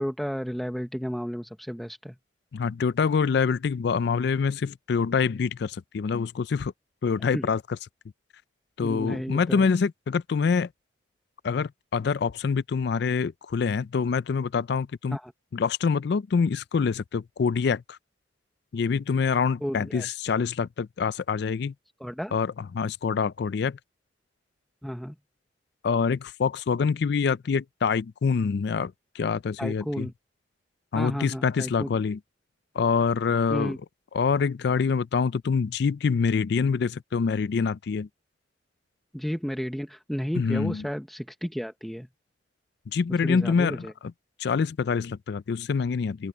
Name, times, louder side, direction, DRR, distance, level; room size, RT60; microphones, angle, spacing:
voice 1, 0.0-2.2 7.3-7.5 8.8-9.7 15.1-15.3 19.6-20.1 22.0-22.4 24.8-25.1 29.6-30.1 30.9-31.9 33.5-33.8 39.1-42.1 43.2-43.9, equal, ahead, 0.9 m, -32 dB
voice 2, 2.5-6.7 7.0-7.6 8.8-10.7 11.4-15.2 15.5-18.0 18.7-21.7 22.3-23.8 25.8-30.1 30.9-32.2 32.8-33.7 34.1-38.1 40.4-40.9 42.9-43.9 44.4-46.3, left 5 dB, 60° left, 0.4 m, -25 dB
open air
head